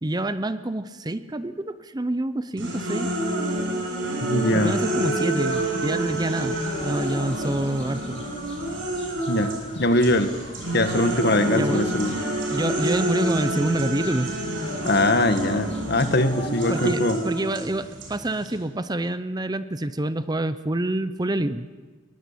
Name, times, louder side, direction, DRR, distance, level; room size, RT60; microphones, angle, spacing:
voice 1, 0.0-3.1 4.5-8.2 11.5-11.8 12.5-14.3 16.7-21.7, right 1 dB, 20° right, 13 dB, 0.7 m, -27 dB
sound 1, 2.6-9.7 10.0-18.6, right 1 dB, 70° right, 6.6 m, -28 dB
voice 2, 4.2-4.8 9.3-10.3 10.7-12.1 14.8-17.2, left 1 dB, 55° left, 8 dB, 1.8 m, -22 dB
sound 2, 5.4-16.9, left 3 dB, 30° left, 2.9 m, -43 dB
22.0 x 21.5 x 8.5 m, 1.4 s
head